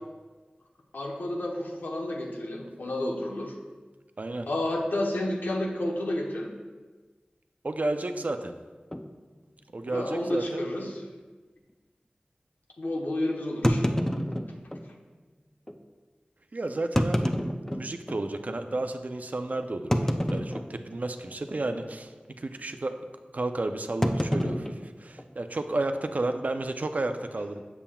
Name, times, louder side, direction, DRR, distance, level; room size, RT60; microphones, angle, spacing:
voice 1, 0.9-3.6 4.5-6.5 9.9-11.0 12.8-13.9, left 1 dB, 85° left, 0 dB, 0.9 m, -30 dB
voice 2, 4.2-4.5 7.6-8.6 9.7-10.6 16.5-17.3 17.7-23.0 23.3-27.6, right 2 dB, 55° right, 7 dB, 0.5 m, -32 dB
sound 1, 8.9-9.1 9.8-9.9 10.2-10.3 10.9-11.1 13.6-14.8 15.7-15.8 16.8-18.2 18.7-18.8 19.9-21.0 21.3-21.6 21.9-22.2 24.0-25.6, equal, 15° left, 0.5 m, -28 dB
7.1 x 6.9 x 2.3 m, 1.3 s
wide cardioid pair, 50°, 3 cm